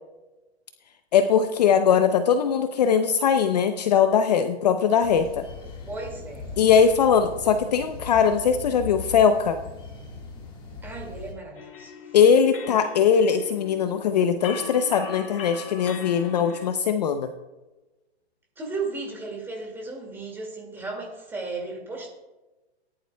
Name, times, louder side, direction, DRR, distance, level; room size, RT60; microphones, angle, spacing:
voice 1, 1.1-5.4 6.6-9.6 12.1-17.3, left 7 dB, 40° left, 8 dB, 0.6 m, -20 dB
sound 1, 5.0-11.3, left 4 dB, 15° left, 1.7 m, -39 dB
voice 2, 5.8-6.6 10.8-11.9 18.6-22.1, right 3 dB, 5° right, 0 dB, 2.2 m, -35 dB
sound 2, 11.5-16.7, left 5 dB, 55° left, 1.8 m, -40 dB
18.5 x 11.0 x 2.3 m, 1.1 s
hypercardioid pair, 160°, 33 cm